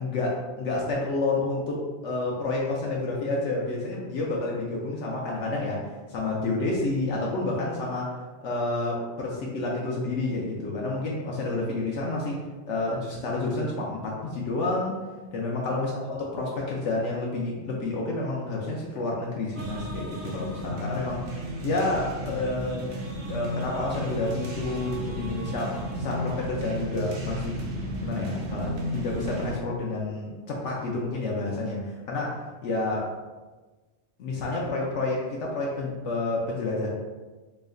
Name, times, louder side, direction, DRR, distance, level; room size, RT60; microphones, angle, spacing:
voice 1, 0.0-15.0 15.3-21.3 21.6-27.5 28.0-33.1 34.2-36.9, left 2 dB, 70° left, -3 dB, 0.8 m, -29 dB
sound 1, 19.6-29.6, equal, 65° right, 0.8 m, -33 dB
3.0 x 2.1 x 3.6 m, 1.3 s
omnidirectional pair, 1.4 m